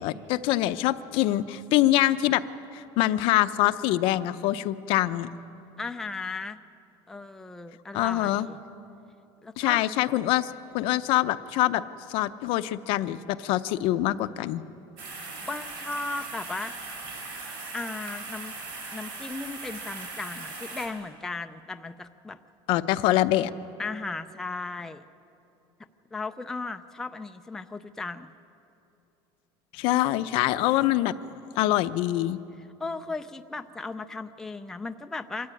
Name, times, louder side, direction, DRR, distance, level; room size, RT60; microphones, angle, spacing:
voice 1, 0.0-2.4 2.7-5.3 7.9-8.5 9.6-11.8 12.1-14.6 22.7-23.5 29.7-31.1 31.6-32.4, left 15 dB, 60° left, 12 dB, 0.6 m, -24 dB
voice 2, 5.8-6.6 7.1-8.6 9.4-9.8 15.5-16.9 17.7-18.5 18.9-22.4 23.8-25.0 26.1-28.3 32.8-35.5, left 3 dB, 5° left, 6 dB, 0.4 m, -36 dB
sound 1, 15.0-20.9, right 3 dB, 90° right, 5.9 m, -39 dB
24.5 x 14.0 x 9.7 m, 2.8 s
cardioid pair, 165°, 10 cm